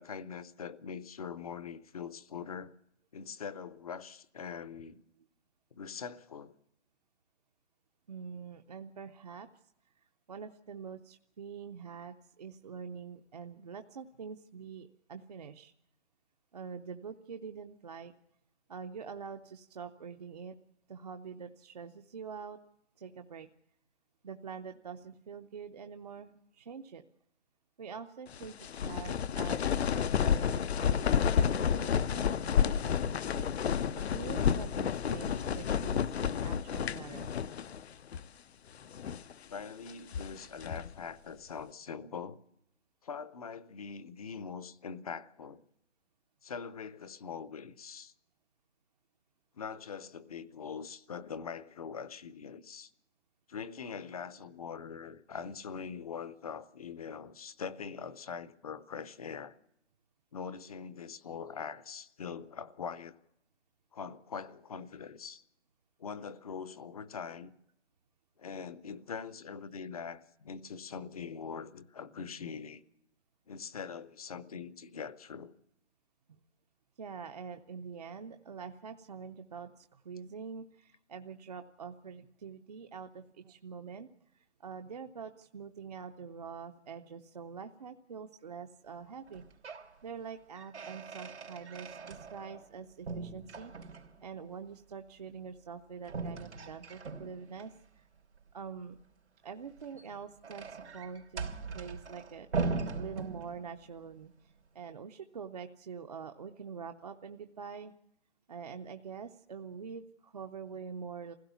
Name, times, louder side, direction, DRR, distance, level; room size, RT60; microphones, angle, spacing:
voice 1, 0.0-2.7 3.1-5.0 5.7-6.5 39.5-42.4 43.0-45.6 46.4-48.1 49.5-52.9 53.5-59.5 60.3-63.2 63.9-65.4 66.0-67.5 68.4-72.8 73.5-75.5, left 6 dB, 35° left, 0.7 m, -43 dB
voice 2, 8.1-9.5 10.0-15.7 16.5-18.1 18.7-20.6 20.9-22.6 23.0-23.5 24.2-27.0 27.8-33.0 33.3-37.3 76.3-76.4 77.0-89.4 90.0-93.7 94.2-98.1 98.5-99.0 99.4-104.3 104.7-107.9 108.5-111.3, right 6 dB, 35° right, 0.7 m, -45 dB
sound 1, 28.3-37.8 38.1-38.2 38.8-39.3 39.9-41.0, left 8 dB, 65° left, 0.7 m, -30 dB
sound 2, 89.3-89.9 90.3-92.7 93.0-94.3 96.0-97.7 99.7-103.9, right 4 dB, 90° right, 3.3 m, -39 dB
23.0 x 16.5 x 6.9 m
hypercardioid pair, 165°, 34 cm